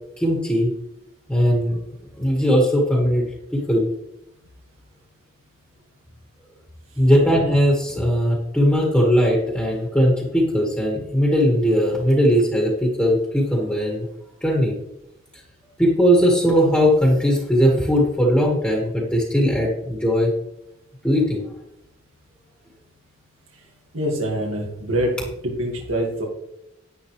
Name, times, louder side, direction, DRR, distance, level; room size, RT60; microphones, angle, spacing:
voice 1, 0.2-0.7 1.3-1.8 2.1-3.2 3.5-3.9 7.0-14.1 14.4-14.7 15.8-20.3 21.0-21.5, equal, 5° left, -2 dB, 1.9 m, -19 dB
voice 2, 23.9-25.2 25.4-26.2, equal, 85° right, -2 dB, 2.1 m, -25 dB
10.5 x 10.5 x 3.3 m, 0.86 s
head